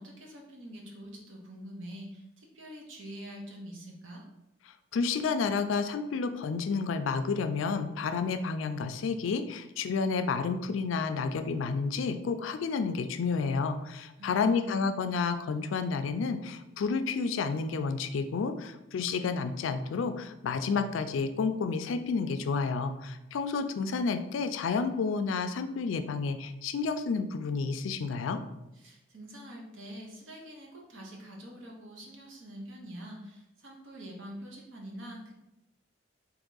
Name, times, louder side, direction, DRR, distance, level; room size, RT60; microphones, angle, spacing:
voice 1, 0.0-4.2 14.2-14.8 28.7-35.3, equal, 75° right, -1 dB, 0.9 m, -45 dB
voice 2, 4.9-28.4, left 4 dB, 80° left, 9 dB, 0.4 m, -30 dB
3.5 x 3.0 x 3.9 m, 0.93 s
head